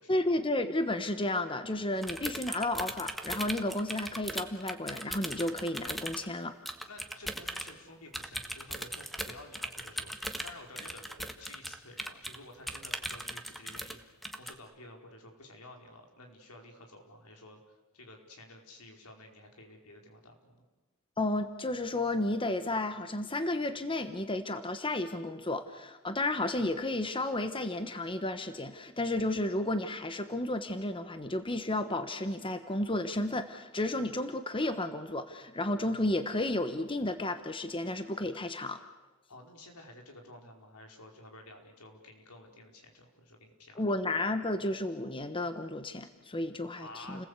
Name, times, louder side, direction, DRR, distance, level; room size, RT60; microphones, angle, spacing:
voice 1, 0.1-6.6 21.2-38.8 43.8-47.3, left 1 dB, 25° left, 9 dB, 1.2 m, -32 dB
sound 1, 2.0-6.3 6.6-7.7 8.1-12.4 12.7-14.0 14.2-14.5, equal, ahead, 1.5 m, -38 dB
voice 2, 6.9-10.1 10.4-20.6 39.3-43.8 46.8-47.3, left 2 dB, 90° left, 2 dB, 5.0 m, -52 dB
30.0 x 20.0 x 8.3 m, 1.1 s
head